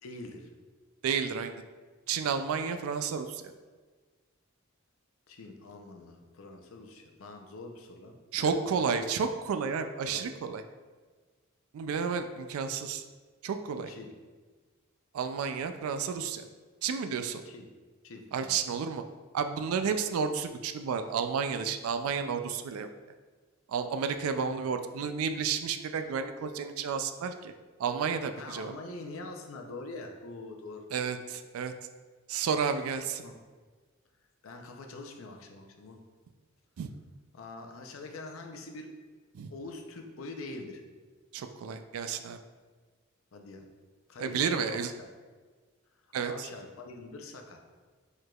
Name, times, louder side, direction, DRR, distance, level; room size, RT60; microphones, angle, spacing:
voice 1, 0.0-0.5 5.3-8.8 10.1-10.3 13.9-14.1 17.4-17.7 18.0-18.6 28.4-30.9 33.2-33.4 34.4-36.0 37.3-38.9 39.5-40.8 43.3-43.7 44.1-44.4 44.7-45.1 46.2-47.6, left 2 dB, 70° left, 3 dB, 0.6 m, -44 dB
voice 2, 1.0-1.5 2.1-3.4 8.3-10.6 11.7-13.0 13.4-13.9 15.1-16.4 16.8-17.4 18.3-19.0 19.3-22.9 23.7-27.5 27.8-28.7 30.9-31.7 32.3-33.2 36.8-36.9 39.3-39.5 41.3-42.4 44.2-44.9 46.1-46.5, right 6 dB, 85° right, 8 dB, 0.3 m, -31 dB
4.8 x 4.5 x 2.3 m, 1.4 s
head